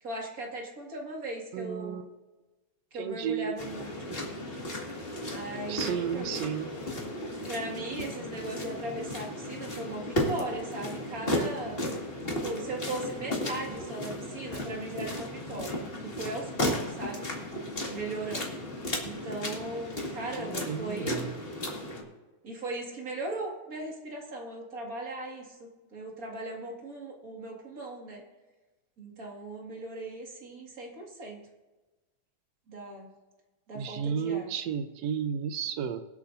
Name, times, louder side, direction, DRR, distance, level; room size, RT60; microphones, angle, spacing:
voice 1, 0.0-2.0 2.9-4.1 5.3-6.4 7.5-11.8 12.2-17.3 17.9-18.6 19.0-21.3 22.4-28.2 29.0-31.4 32.7-33.1 33.7-34.5, right 2 dB, 30° right, 0 dB, 2.1 m, -38 dB
voice 2, 1.5-2.1 3.0-3.5 5.7-6.7 20.4-21.3 33.7-36.0, right 7 dB, 75° right, 9 dB, 1.7 m, -32 dB
sound 1, 3.6-22.0, left 1 dB, 20° left, 1.8 m, -35 dB
24.5 x 8.2 x 2.7 m, 1.2 s
omnidirectional pair, 3.5 m